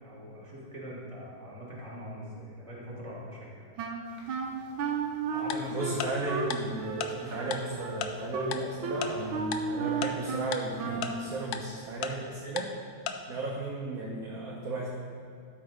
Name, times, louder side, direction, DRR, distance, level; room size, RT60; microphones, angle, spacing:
voice 1, 0.0-3.7 5.3-6.1 7.1-7.4 8.8-9.0, left 1 dB, 15° right, -5 dB, 2.1 m, -42 dB
Wind instrument woodwind instrument, 3.8-11.3, right 4 dB, 80° right, 1.6 m, -34 dB
sound 1, 4.0-12.0, right 1 dB, 35° right, 2.0 m, -54 dB
Tick-tock, 5.5-5.6 6.0-6.1 6.5-6.6 7.0-7.1 7.5-7.6 8.0-8.1 8.5-8.6 9.0-9.1 9.5-9.6 10.0-10.1 10.5-10.6 11.0-11.1 11.5-11.6 12.0-12.1 12.6-12.7 13.1-13.2, left 9 dB, 75° left, 0.9 m, -32 dB
voice 2, 5.7-12.7 13.3-14.9, right 2 dB, 55° right, -2 dB, 1.2 m, -35 dB
12.5 x 4.3 x 5.1 m, 2.5 s
omnidirectional pair, 2.2 m